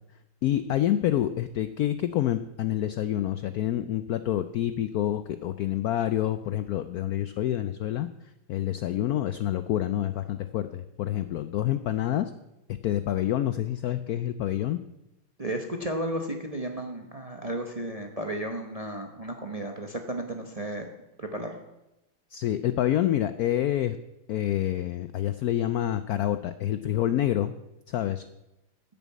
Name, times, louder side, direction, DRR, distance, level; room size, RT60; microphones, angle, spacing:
voice 1, 0.4-8.1 8.5-12.3 12.8-14.8 22.3-24.0 24.3-27.5 27.9-28.2, left 12 dB, 75° left, 12 dB, 0.8 m, -27 dB
voice 2, 15.4-20.9 21.2-21.6, right 1 dB, 30° right, 4 dB, 0.7 m, -33 dB
10.0 x 7.0 x 8.6 m, 0.94 s
omnidirectional pair, 2.1 m